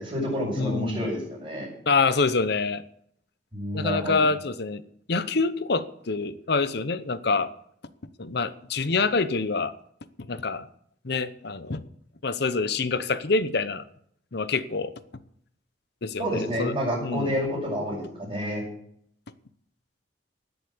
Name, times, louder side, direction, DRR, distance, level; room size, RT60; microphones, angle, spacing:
voice 1, 0.0-1.7 3.5-4.2 16.2-18.6, equal, 25° right, -9 dB, 6.3 m, -29 dB
voice 2, 0.6-1.1 1.9-2.8 3.7-4.8 5.1-7.5 8.2-9.7 10.2-10.7 11.0-11.9 12.2-13.8 14.3-14.9 16.0-16.7 17.0-17.4, left 4 dB, 60° left, 14 dB, 0.8 m, -26 dB
16.5 x 8.2 x 7.2 m, 0.68 s
head